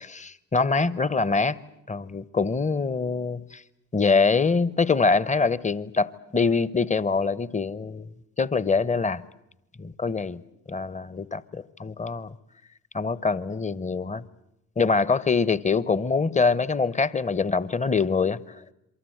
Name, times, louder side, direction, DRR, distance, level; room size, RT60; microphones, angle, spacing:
voice 1, 0.0-1.6 1.9-3.6 3.9-8.1 8.4-9.2 9.8-10.4 10.7-12.3 12.9-14.2 14.8-18.4, left 4 dB, 15° left, 18 dB, 1.0 m, -24 dB
27.0 x 24.0 x 8.0 m, 0.84 s
hypercardioid pair, 55°, 41 cm